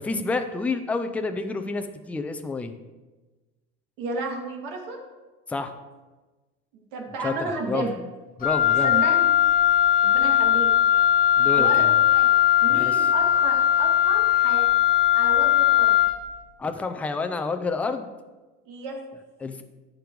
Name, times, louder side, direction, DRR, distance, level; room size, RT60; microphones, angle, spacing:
voice 1, 0.0-2.7 5.5-5.7 7.2-7.8 8.4-8.9 11.4-11.9 12.7-13.1 16.6-18.1 19.4-19.6, left 4 dB, 5° left, 7 dB, 0.3 m, -29 dB
voice 2, 4.0-5.0 6.7-8.0 8.8-9.3 10.0-10.7 11.6-12.3 12.6-14.7 15.1-15.9 18.7-19.0, right 3 dB, 80° right, 1 dB, 2.2 m, -32 dB
Wind instrument woodwind instrument, 8.4-16.2, left 11 dB, 25° left, 0.9 m, -19 dB
13.5 x 5.2 x 4.6 m, 1.2 s
cardioid pair, 160°, 32 cm